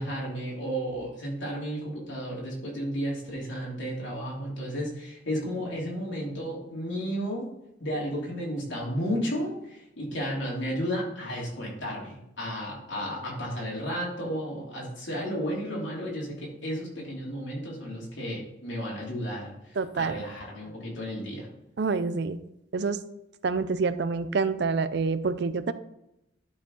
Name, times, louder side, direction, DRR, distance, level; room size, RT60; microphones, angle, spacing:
voice 1, 0.0-7.5 7.8-21.5, equal, 70° left, -4 dB, 3.0 m, -33 dB
voice 2, 19.8-20.1 21.8-22.4 22.7-23.0 23.4-25.7, right 4 dB, 55° right, 13 dB, 0.4 m, -27 dB
11.5 x 4.7 x 3.9 m, 0.85 s
head